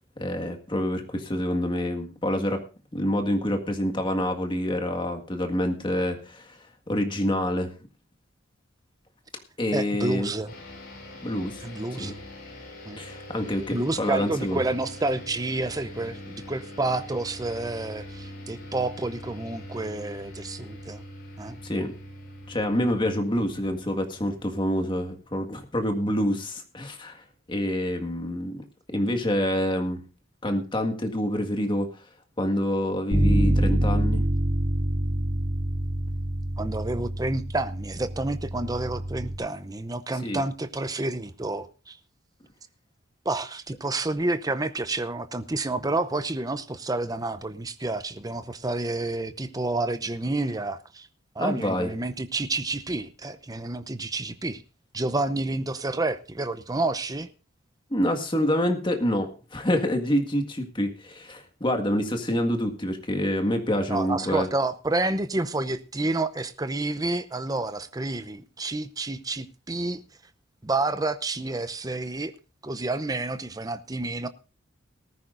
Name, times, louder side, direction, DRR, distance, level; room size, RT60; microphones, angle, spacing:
voice 1, 0.2-2.6 2.9-6.6 6.9-7.7 9.6-10.3 11.2-11.6 11.9-12.1 13.0-14.6 21.6-21.9 22.5-28.6 28.9-30.0 30.4-31.9 32.4-34.2 40.2-40.4 51.4-51.9 57.9-64.5, equal, 25° left, 1.8 m, -27 dB
voice 2, 9.7-10.5 11.6-12.2 12.9-13.0 13.7-21.0 21.4-21.6 36.6-42.0 43.2-51.1 51.3-54.6 54.9-57.3 63.9-70.0 70.6-72.3 72.6-74.3, right 2 dB, 20° right, 0.7 m, -29 dB
sound 1, 10.5-25.3, left 1 dB, 50° left, 7.3 m, -43 dB
Bass guitar, 33.1-39.4, right 1 dB, 55° right, 2.2 m, -26 dB
19.0 x 14.0 x 2.6 m
head